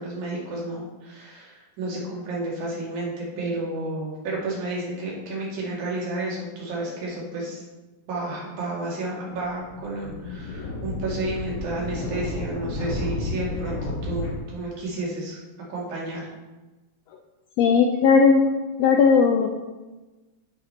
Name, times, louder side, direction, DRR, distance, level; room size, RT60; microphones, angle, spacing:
voice 1, 0.0-7.6 8.1-15.4 15.7-16.2, right 2 dB, 75° right, -4 dB, 3.5 m, -31 dB
sound 1, 9.3-14.4, left 1 dB, 50° left, 2.0 m, -32 dB
voice 2, 17.6-18.4 18.8-19.5, left 5 dB, 90° left, 4 dB, 1.4 m, -17 dB
9.5 x 5.1 x 4.4 m, 1.2 s
omnidirectional pair, 3.5 m